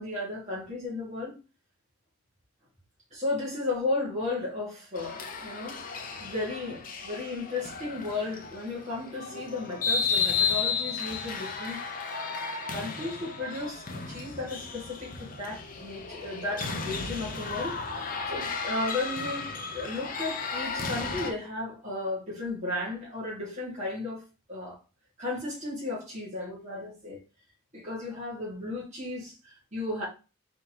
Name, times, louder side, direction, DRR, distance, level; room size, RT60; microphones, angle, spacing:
voice 1, 0.0-1.3 3.1-5.8 6.2-11.8 12.7-24.2 24.5-24.8 25.2-27.2 27.7-30.1, left 2 dB, 35° right, 2.2 m, -34 dB
sound 1, 4.9-21.3, left 5 dB, 40° left, 0.7 m, -33 dB
4.2 x 4.0 x 3.1 m
head